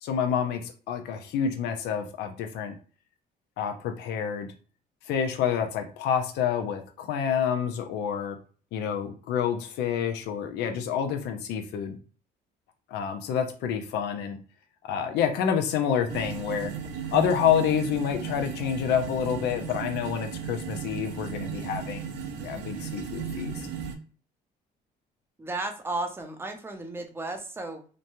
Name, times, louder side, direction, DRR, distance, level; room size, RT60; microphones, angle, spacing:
voice 1, 0.0-2.7 3.6-4.5 5.1-8.4 8.7-12.0 12.9-14.4 14.8-16.7 17.1-22.1 22.4-23.6, left 8 dB, 80° left, 6 dB, 0.5 m, -28 dB
sound 1, 16.1-23.9, right 7 dB, 80° right, 0.6 m, -36 dB
voice 2, 25.4-27.9, right 2 dB, 15° right, 4 dB, 0.6 m, -34 dB
3.0 x 2.2 x 2.6 m, 0.39 s
cardioid pair, 110°, 17 cm